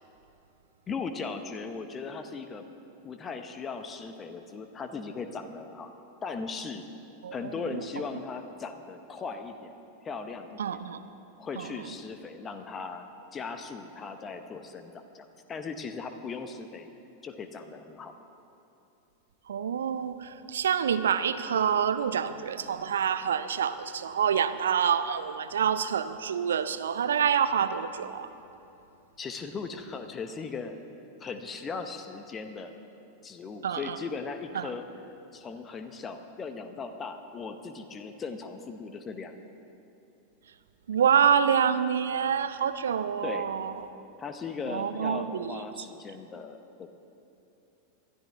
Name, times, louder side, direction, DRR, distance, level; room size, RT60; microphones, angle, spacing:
voice 1, 0.9-2.7 3.0-5.9 6.2-6.8 7.3-9.7 10.0-10.8 11.4-13.1 13.3-16.9 17.2-18.1 29.2-30.8 31.2-32.7 33.2-34.8 35.3-39.3 43.2-43.5 44.2-46.9, left 4 dB, 20° left, 8 dB, 0.9 m, -38 dB
voice 2, 7.2-7.5 10.6-11.0 11.6-11.7 19.5-28.3 33.6-34.0 34.5-34.7 40.9-43.7 44.7-45.6, right 8 dB, 65° right, 13 dB, 0.5 m, -27 dB
20.0 x 12.5 x 3.5 m, 2.8 s
figure-of-eight pair, 90°, 0 cm